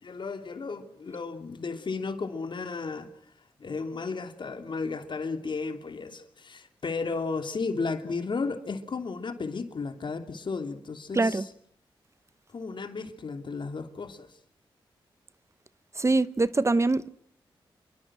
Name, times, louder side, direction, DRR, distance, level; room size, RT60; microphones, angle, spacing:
voice 1, 0.0-3.1 3.6-11.5 12.5-14.3, left 4 dB, 55° left, 3.0 m, -34 dB
voice 2, 16.0-17.1, right 3 dB, 30° right, 0.9 m, -23 dB
27.5 x 23.0 x 6.3 m
cardioid pair, 60°, 9 cm